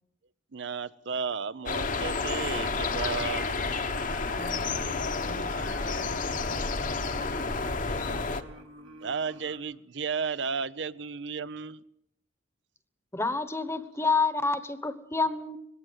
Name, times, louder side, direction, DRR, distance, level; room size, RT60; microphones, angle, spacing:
voice 1, 0.5-3.7 7.9-8.4 9.0-11.8, right 5 dB, 65° right, 18 dB, 0.7 m, -34 dB
sound 1, 1.7-8.4, left 4 dB, 40° left, 1.1 m, -30 dB
Singing, 3.3-9.6, right 1 dB, 85° right, 3.0 m, -47 dB
voice 2, 4.3-7.0, left 2 dB, 65° left, 8 dB, 1.3 m, -44 dB
voice 3, 13.1-15.6, left 3 dB, 15° left, 12 dB, 1.1 m, -28 dB
20.0 x 16.5 x 8.0 m, 0.79 s
head